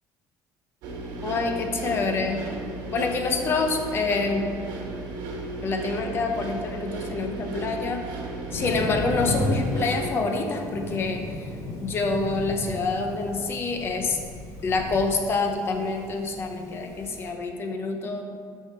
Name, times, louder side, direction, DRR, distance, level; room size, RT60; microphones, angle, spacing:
sound 1, 0.8-10.1, right 2 dB, 70° right, 1.3 m, -35 dB
voice 1, 1.2-2.5 2.9-4.5 5.6-8.0 8.5-11.5 11.8-14.2 14.6-18.2, left 3 dB, 35° left, 4 dB, 0.7 m, -27 dB
Thunder, 8.5-17.3, left 1 dB, 50° left, 1.3 m, -34 dB
6.2 x 5.7 x 4.3 m, 2.3 s
cardioid pair, 165°, 7 cm